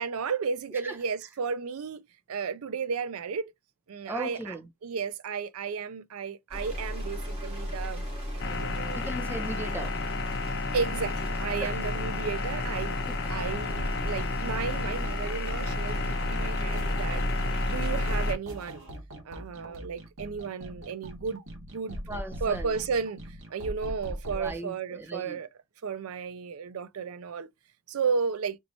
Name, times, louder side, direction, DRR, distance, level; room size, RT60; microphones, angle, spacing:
voice 1, 0.0-2.0 2.3-3.5 3.9-9.0 10.7-13.0 13.3-17.2 17.7-18.9 19.2-21.4 21.7-22.0 22.4-25.5 25.8-27.5 27.9-28.6, right 5 dB, 80° right, 0.5 m, -33 dB
voice 2, 4.0-4.7 8.9-10.0 11.6-11.8 12.8-13.5 22.1-22.8 24.3-25.4, right 1 dB, 10° right, 0.8 m, -38 dB
sound 1, 6.5-18.3, equal, 30° right, 2.6 m, -33 dB
sound 2, 8.4-18.4, left 5 dB, 55° left, 0.6 m, -34 dB
sound 3, 13.5-24.5, equal, 60° right, 1.7 m, -41 dB
4.4 x 4.3 x 2.7 m
head